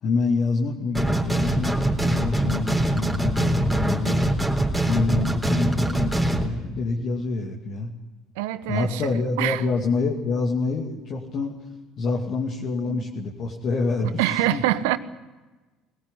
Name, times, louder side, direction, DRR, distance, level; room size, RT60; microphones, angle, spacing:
voice 1, 0.0-4.3 4.8-7.9 8.7-11.7 12.0-14.6, left 4 dB, 50° left, -1 dB, 2.4 m, -27 dB
sound 1, 0.9-6.5, right 1 dB, ahead, 3.8 m, -23 dB
voice 2, 8.4-9.0 9.4-9.6 12.8-13.0 14.2-15.0, right 14 dB, 70° right, 13 dB, 1.1 m, -24 dB
21.0 x 19.0 x 10.0 m, 1.2 s
hypercardioid pair, 60°, 0 cm